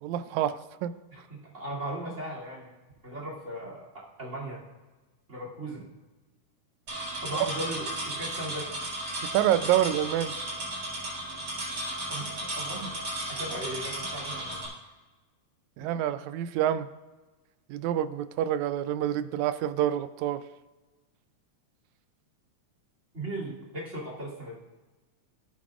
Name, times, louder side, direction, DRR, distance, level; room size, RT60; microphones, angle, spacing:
voice 1, 0.0-0.9 9.3-10.3 15.8-16.9 17.7-20.4, right 11 dB, 80° right, 13 dB, 1.9 m, -27 dB
voice 2, 1.1-2.7 3.0-4.6 5.3-5.9 7.2-8.7 12.1-13.0 13.3-14.6 23.1-24.6, right 1 dB, 25° right, -3 dB, 2.7 m, -37 dB
sound 1, 6.9-14.7, right 1 dB, 45° right, 5.0 m, -35 dB
18.5 x 8.5 x 2.4 m, 1.2 s
omnidirectional pair, 3.4 m